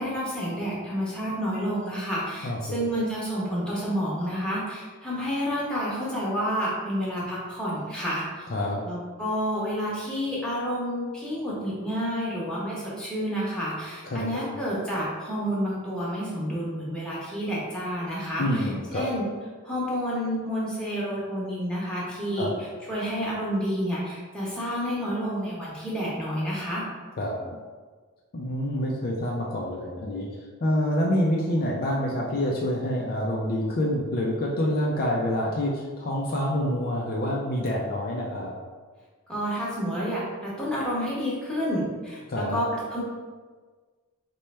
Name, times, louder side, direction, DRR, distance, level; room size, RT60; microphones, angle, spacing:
voice 1, 0.0-8.5 8.8-18.7 18.9-19.2 19.6-22.5 22.9-26.8 39.3-43.0, equal, 5° left, -8 dB, 1.0 m, -29 dB
voice 2, 2.4-2.8 8.5-8.8 14.0-14.5 18.4-19.1 22.4-22.5 27.2-27.4 28.3-38.5 42.3-42.6, left 1 dB, 45° left, -2 dB, 0.4 m, -27 dB
3.2 x 2.2 x 4.1 m, 1.4 s
head